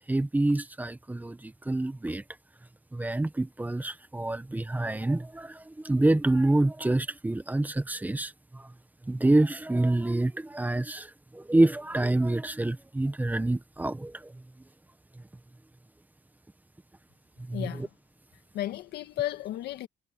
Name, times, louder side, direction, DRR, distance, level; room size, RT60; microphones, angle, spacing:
voice 1, 0.0-2.2 2.9-8.7 9.0-14.4 15.1-15.2 17.4-17.9, right 2 dB, 10° right, 1.4 m, -27 dB
voice 2, 17.5-17.9 18.5-19.9, left 14 dB, 75° left, 1.8 m, -33 dB
cardioid pair, 110°, 17 cm